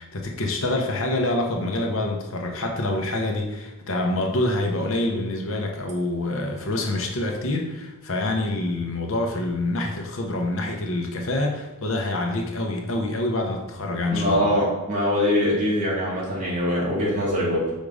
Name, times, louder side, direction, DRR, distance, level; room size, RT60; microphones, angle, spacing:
voice 1, 0.0-14.6, left 2 dB, 60° left, 1 dB, 0.9 m, -26 dB
voice 2, 14.1-17.7, left 1 dB, 35° right, -5 dB, 2.0 m, -23 dB
5.2 x 3.7 x 4.9 m, 1.1 s
head